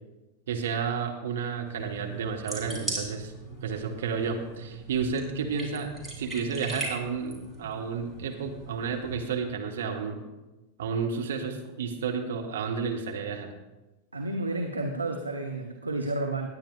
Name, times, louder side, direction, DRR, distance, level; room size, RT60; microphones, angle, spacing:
voice 1, 0.5-3.3 3.6-5.9 6.2-10.2 10.8-13.5, right 5 dB, 60° right, 2 dB, 1.3 m, -31 dB
sound 1, 1.7-9.2, right 2 dB, 10° right, 3.2 m, -40 dB
voice 2, 14.1-16.5, right 2 dB, 80° right, 3 dB, 0.8 m, -31 dB
19.5 x 9.1 x 2.4 m, 1.1 s
figure-of-eight pair, 90°, 0 cm